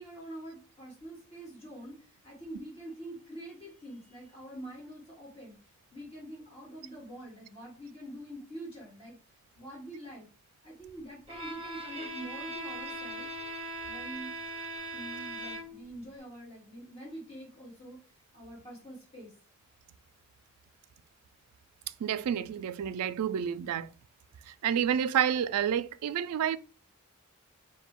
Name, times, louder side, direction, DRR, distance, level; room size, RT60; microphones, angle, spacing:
voice 1, 0.0-10.3 10.6-13.3 13.8-14.3 14.9-19.3, right 1 dB, 25° left, 1.6 m, -45 dB
Bowed string instrument, 11.3-15.9, right 1 dB, 25° right, 0.8 m, -40 dB
voice 2, 22.0-23.9 24.5-26.6, right 9 dB, 85° right, 0.3 m, -29 dB
4.8 x 2.2 x 3.5 m
head